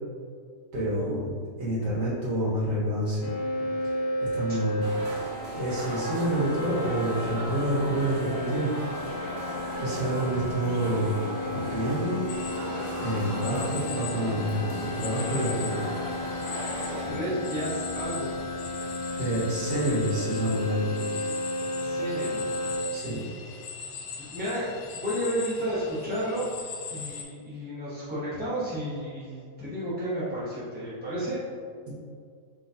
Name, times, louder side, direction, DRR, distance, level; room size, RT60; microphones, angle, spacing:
voice 1, 0.7-1.3 1.6-3.3 3.8-4.8 5.6-8.7 9.8-11.2 11.5-12.2 13.0-15.8 18.8-21.0 22.9-23.2, right 1 dB, 85° right, -8 dB, 2.1 m, -28 dB
sound 1, 3.2-22.8, left 1 dB, 60° left, 0.8 m, -33 dB
sound 2, 4.8-17.1, right 1 dB, 55° right, 0.9 m, -37 dB
sound 3, 12.3-27.2, left 5 dB, 90° left, 1.2 m, -40 dB
voice 2, 13.3-13.7 16.8-18.4 21.8-22.5 24.3-26.5 26.9-31.4, equal, 10° right, -11 dB, 0.5 m, -32 dB
5.8 x 3.2 x 2.7 m, 2.1 s
omnidirectional pair, 1.8 m